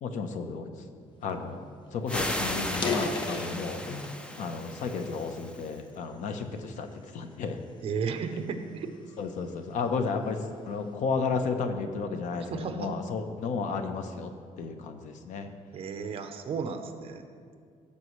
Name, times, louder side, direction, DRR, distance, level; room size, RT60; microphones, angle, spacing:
voice 1, 0.0-0.7 1.2-1.6 1.9-3.8 4.4-6.9 7.1-7.6 9.2-14.3 14.6-15.5, left 4 dB, 70° left, 7 dB, 0.8 m, -33 dB
sound 1, 1.5-1.6 1.9-2.1 2.6-4.2 4.7-6.0 6.6-6.9 7.5-9.5, left 4 dB, 35° left, 0.8 m, -35 dB
sound 2, 2.1-5.7, left 1 dB, 10° left, 0.5 m, -35 dB
voice 2, 7.8-8.9 12.4-12.9 15.7-17.2, right 5 dB, 45° right, 7 dB, 0.7 m, -34 dB
16.0 x 6.8 x 3.1 m, 2.2 s
cardioid pair, 175°, 13 cm